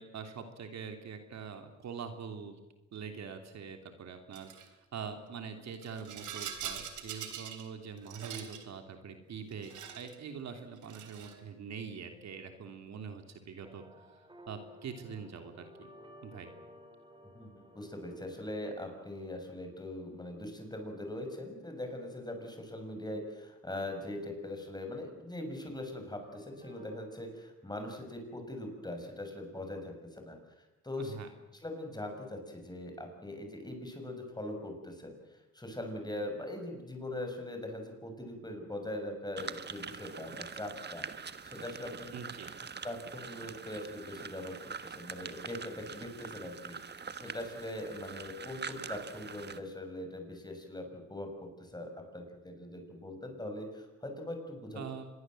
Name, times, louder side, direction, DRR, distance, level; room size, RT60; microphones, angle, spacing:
voice 1, 0.0-2.6 2.9-13.8 14.5-15.9 16.2-16.5 31.0-31.3 42.1-42.5 54.7-55.1, right 6 dB, 60° right, 6 dB, 3.0 m, -44 dB
Rattle, 4.3-4.7 5.7-7.7 8.0-8.7 9.5-10.2 10.8-11.4, right 9 dB, 80° right, 3.5 m, -43 dB
sound 1, 13.6-20.8 26.2-27.2, equal, 15° right, 4.3 m, -57 dB
voice 2, 17.3-31.1 31.5-42.1 42.8-54.8, left 1 dB, 15° left, 5 dB, 6.4 m, -41 dB
sound 2, 39.4-49.6, right 5 dB, 35° right, 1.4 m, -44 dB
26.0 x 21.5 x 7.7 m, 1.0 s
cardioid pair, 90°, 30 cm